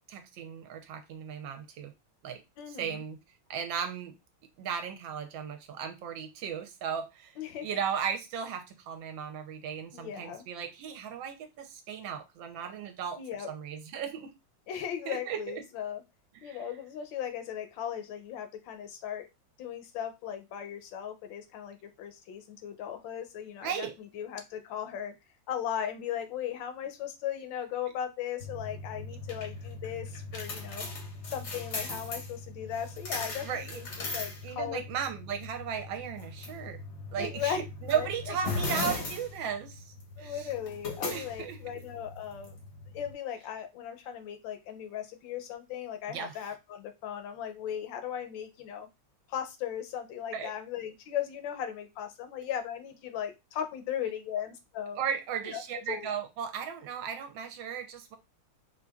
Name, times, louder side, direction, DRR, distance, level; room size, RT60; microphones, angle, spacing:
voice 1, 0.1-1.9 2.2-2.4 2.7-3.2 3.5-4.1 4.6-7.3 7.6-13.2 13.5-14.3 15.1-15.6 16.4-16.6 23.6-23.9 33.4-33.8 34.4-36.8 37.1-40.5 41.1-41.6 46.1-46.4 50.3-50.5 55.0-58.2, right 8 dB, 75° right, 6 dB, 1.3 m, -36 dB
voice 2, 2.6-3.0 7.4-7.7 9.9-10.4 13.2-13.5 14.7-16.0 16.4-19.3 19.6-25.1 25.5-30.9 31.2-33.9 34.1-34.8 37.2-37.6 37.9-38.3 40.2-42.6 42.9-48.9 49.3-55.0 55.4-55.6 55.9-56.1, left 9 dB, 75° left, 7 dB, 1.3 m, -37 dB
sound 1, 28.4-43.1, left 3 dB, 55° left, 0.8 m, -39 dB
4.4 x 2.5 x 2.3 m, 0.23 s
omnidirectional pair, 2.3 m